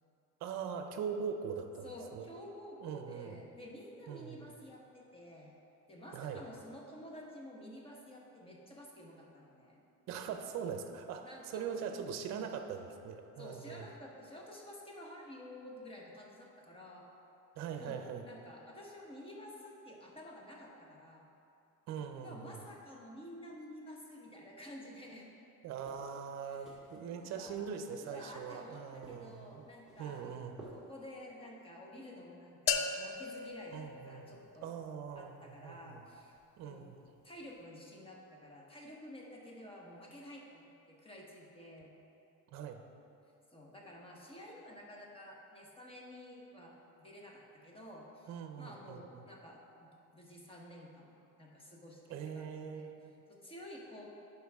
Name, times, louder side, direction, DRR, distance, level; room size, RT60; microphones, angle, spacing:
voice 1, 0.4-2.3 2.8-3.4 4.1-4.5 6.1-6.4 10.1-13.9 17.6-18.2 21.9-22.6 25.6-29.6 30.0-30.7 33.7-34.4 34.6-36.0 36.6-37.0 42.5-42.8 48.3-49.2 52.1-53.2, right 7 dB, 60° right, 7 dB, 0.6 m, -42 dB
voice 2, 1.8-5.5 5.9-9.8 11.2-11.8 12.3-12.5 13.4-17.1 17.8-21.3 22.2-25.3 26.4-26.8 27.2-27.7 28.0-30.3 30.7-34.7 35.2-36.9 37.2-41.9 43.5-48.3 48.6-52.9 53.3-54.1, left 1 dB, 15° left, -2 dB, 1.1 m, -51 dB
sound 1, 25.8-31.2, right 1 dB, ahead, 1.2 m, -57 dB
sound 2, 32.7-34.7, left 6 dB, 45° left, 0.4 m, -36 dB
11.5 x 4.6 x 3.5 m, 2.6 s
cardioid pair, 150°, 31 cm